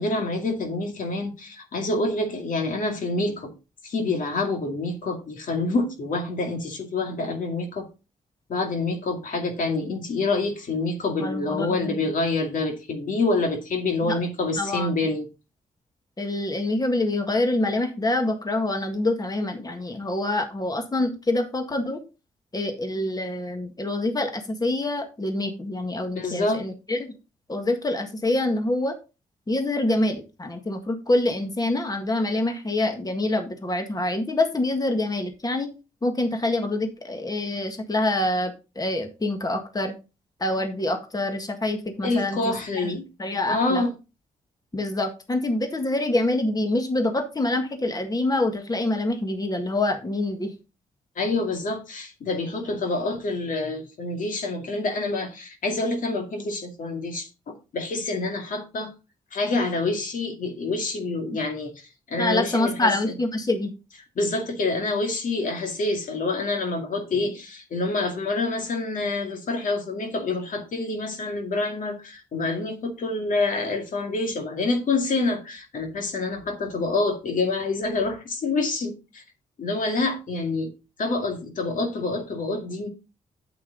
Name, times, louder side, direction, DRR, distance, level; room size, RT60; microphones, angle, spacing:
voice 1, 0.0-3.5 3.8-7.9 8.5-15.3 26.2-26.6 42.0-43.1 43.5-43.9 51.2-58.9 59.3-61.7 62.1-63.1 64.2-79.2 79.6-80.7 81.0-82.9, left 3 dB, 65° left, 2.3 m, -27 dB
voice 2, 11.2-12.1 14.1-14.2 14.6-14.9 16.2-22.0 22.5-27.1 27.5-28.9 29.5-35.7 36.0-39.9 40.4-43.8 44.7-50.5 62.2-63.7, left 2 dB, 25° left, 1.7 m, -26 dB
8.4 x 7.2 x 3.9 m
cardioid pair, 60°, 15 cm